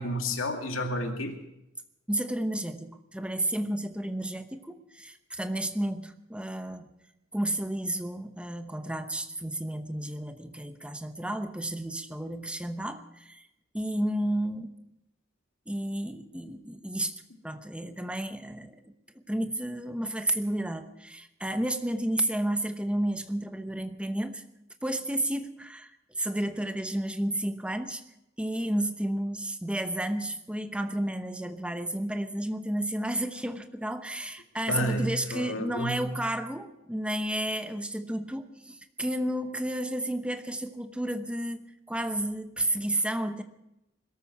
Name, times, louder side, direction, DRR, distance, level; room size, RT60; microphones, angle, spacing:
voice 1, 0.0-1.4 34.7-36.1, equal, 90° left, 4 dB, 2.3 m, -31 dB
voice 2, 2.1-6.9 7.3-13.5 13.7-14.7 15.7-18.9 19.3-24.4 24.8-28.0 28.4-41.6 41.9-43.4, right 1 dB, 5° right, 8 dB, 0.9 m, -32 dB
21.5 x 13.5 x 4.7 m, 0.88 s
head